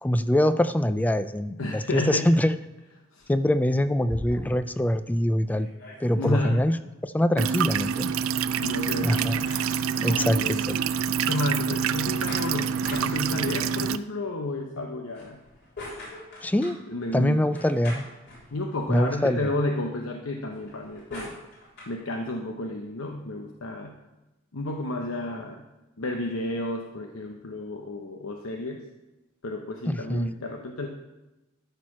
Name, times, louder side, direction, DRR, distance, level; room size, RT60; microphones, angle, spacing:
voice 1, 0.0-2.5 3.3-5.7 6.0-6.8 7.0-8.1 9.0-9.4 10.0-10.7 16.4-16.8 17.1-18.1 18.9-19.5 29.9-30.3, left 1 dB, 10° left, 11 dB, 0.3 m, -24 dB
voice 2, 1.6-2.4 3.1-3.3 6.2-6.7 8.6-9.4 10.0-10.6 11.3-15.4 16.9-17.4 18.5-21.4 21.9-24.0 24.5-25.6 26.0-28.8 29.4-30.9, left 2 dB, 85° left, 2 dB, 0.9 m, -31 dB
sound 1, 3.2-4.8 5.2-5.3 5.5-6.6 8.2-10.1 12.0-13.7 15.0-16.8 17.5-19.0 20.4-22.0, left 1 dB, 55° left, 3.8 m, -42 dB
sound 2, 7.4-14.0, right 7 dB, 85° right, 0.4 m, -27 dB
13.0 x 4.5 x 6.0 m, 1.0 s
head